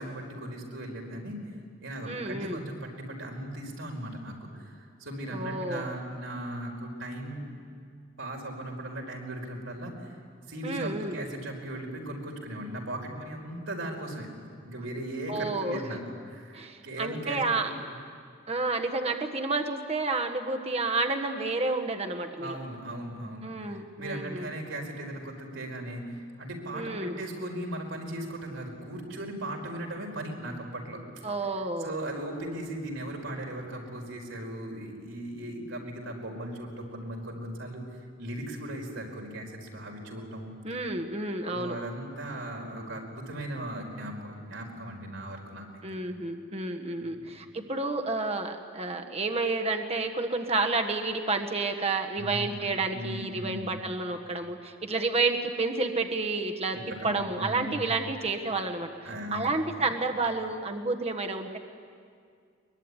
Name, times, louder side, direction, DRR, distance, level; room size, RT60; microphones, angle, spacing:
voice 1, 0.0-1.4 1.8-7.5 8.2-10.2 10.5-14.3 14.6-17.7 22.4-37.8 38.2-40.5 41.5-45.7 47.0-47.4 52.2-52.5 52.9-53.7 56.7-57.9 59.0-59.5 59.8-59.9, right 1 dB, 75° right, 2 dB, 4.9 m, -38 dB
voice 2, 2.0-2.6 5.3-5.9 10.6-11.2 15.3-15.8 16.5-17.7 18.5-22.6 23.4-24.5 26.7-27.1 31.2-31.9 40.6-41.8 45.8-56.8 57.0-58.9 59.3-61.6, right 3 dB, 30° right, 4 dB, 1.5 m, -30 dB
23.0 x 22.5 x 9.9 m, 2.2 s
head